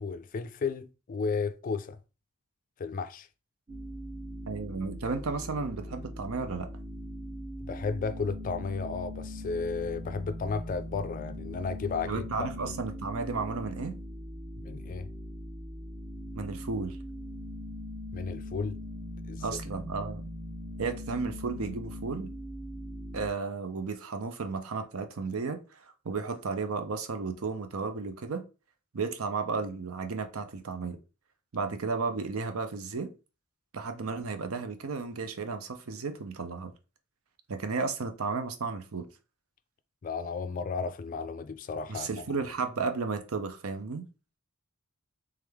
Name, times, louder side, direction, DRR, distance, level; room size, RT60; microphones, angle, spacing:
voice 1, 0.0-2.0 2.8-3.3 7.6-12.2 12.6-12.7 14.6-15.1 18.1-18.8 19.3-19.4 40.0-42.2, left 5 dB, 40° left, 0.3 m, -33 dB
sound 1, 3.7-23.3, left 1 dB, 25° right, 0.6 m, -41 dB
voice 2, 4.5-6.7 12.1-13.9 16.4-17.0 19.4-20.3 20.8-22.3 23.1-28.4 28.9-31.0 31.5-33.1 33.7-36.7 37.5-39.1 41.9-44.0, right 4 dB, 80° right, 0.6 m, -33 dB
3.5 x 3.3 x 3.4 m
head